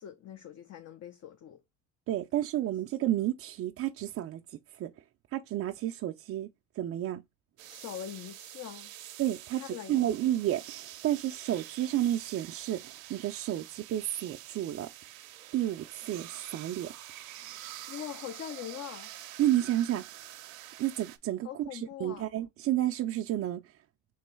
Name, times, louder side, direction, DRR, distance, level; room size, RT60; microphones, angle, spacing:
voice 1, 0.0-1.6 7.6-8.9 9.5-10.0 17.9-19.1 21.4-22.3, left 10 dB, 40° left, 0.7 m, -42 dB
voice 2, 2.1-4.9 5.3-6.5 6.8-7.2 9.2-14.9 15.5-16.9 19.4-20.1 20.8-23.7, right 13 dB, 40° right, 0.4 m, -31 dB
sound 1, 7.6-21.2, right 14 dB, 80° right, 0.6 m, -47 dB
3.1 x 3.0 x 4.4 m
hypercardioid pair, 75°, 40 cm